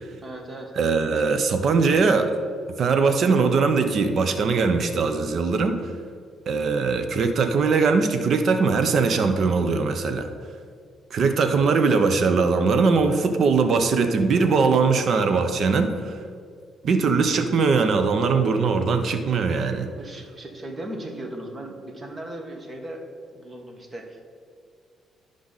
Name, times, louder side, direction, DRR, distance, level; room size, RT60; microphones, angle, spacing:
voice 1, 0.2-0.7 11.6-11.8 20.0-23.0 23.3-24.2, right 1 dB, 30° right, 2 dB, 1.5 m, -37 dB
voice 2, 0.7-2.3 2.8-5.9 6.5-10.3 11.1-16.2 16.8-19.9, right 4 dB, 60° right, 8 dB, 0.7 m, -21 dB
12.0 x 5.0 x 4.0 m, 2.2 s
cardioid pair, 90°, 0 cm